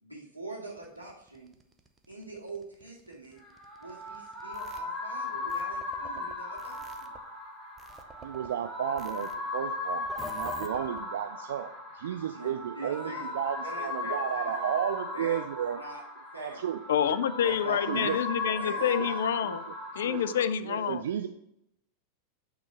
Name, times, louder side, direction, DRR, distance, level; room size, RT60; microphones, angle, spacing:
voice 1, 0.0-1.5 2.1-3.4 3.8-7.1 12.3-12.5 12.7-13.3 13.6-14.7 15.1-15.4 15.7-16.0 16.3-16.6 17.4-19.2, right 2 dB, 90° right, -4 dB, 2.1 m, -43 dB
sound 1, 0.7-4.8 5.5-7.2 7.8-8.5 9.0-9.3 10.0-11.0, right 1 dB, 10° right, 0.7 m, -48 dB
sound 2, 3.4-20.4, left 2 dB, 10° left, 1.8 m, -37 dB
voice 2, 8.2-10.1 10.3-15.8 16.4-16.8 17.1-17.2 17.5-18.2 19.4-19.6 20.0-20.2 20.7-21.3, right 10 dB, 60° right, 8 dB, 0.3 m, -33 dB
voice 3, 16.9-19.6 19.9-21.0, left 9 dB, 60° left, 15 dB, 0.4 m, -28 dB
8.8 x 3.7 x 4.4 m, 0.77 s
figure-of-eight pair, 90°, 0 cm